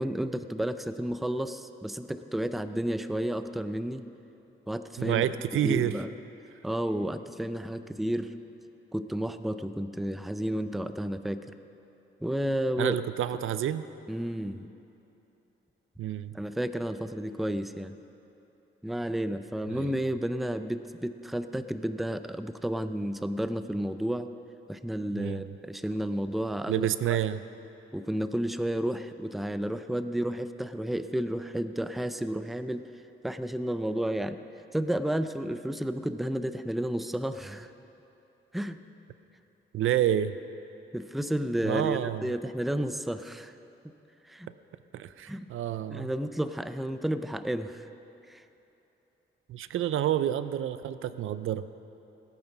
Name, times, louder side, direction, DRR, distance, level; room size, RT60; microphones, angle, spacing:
voice 1, 0.0-4.0 4.7-5.2 5.6-6.1 6.6-8.3 8.9-11.5 12.2-13.0 14.1-14.7 16.3-18.0 18.8-24.3 24.7-26.9 27.9-32.8 33.2-34.4 34.7-37.7 38.5-38.8 40.9-43.5 44.3-44.5 45.3-45.5 45.9-47.9 48.3-48.4, right 1 dB, ahead, 10 dB, 0.4 m, -31 dB
voice 2, 5.0-6.0 12.8-13.8 16.0-16.3 19.7-19.9 25.1-25.5 26.7-27.4 39.7-40.3 41.6-42.3 44.9-46.1 49.5-51.7, right 11 dB, 75° right, 13 dB, 0.5 m, -29 dB
18.0 x 8.8 x 5.9 m, 2.9 s
cardioid pair, 100°, 21 cm